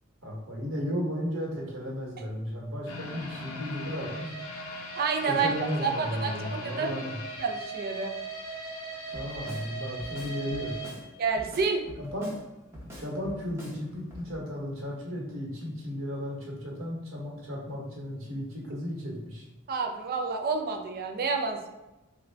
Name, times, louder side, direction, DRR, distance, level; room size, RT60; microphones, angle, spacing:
voice 1, 0.2-4.3 5.3-7.1 9.1-10.8 11.9-12.3 12.8-19.4, equal, 75° right, -3 dB, 1.2 m, -34 dB
sound 1, 2.9-11.9 12.2-12.3 12.8-12.9, right 1 dB, 80° left, 0.6 m, -39 dB
voice 2, 4.9-5.5 5.8-8.1 11.2-11.8 19.7-21.7, right 4 dB, 45° right, 3 dB, 0.4 m, -29 dB
Drum kit, 9.1-9.7 10.0-11.0 11.4-12.4 12.7-13.8 14.1-14.3, equal, 15° right, 0.8 m, -44 dB
3.7 x 2.2 x 3.3 m, 1.0 s
head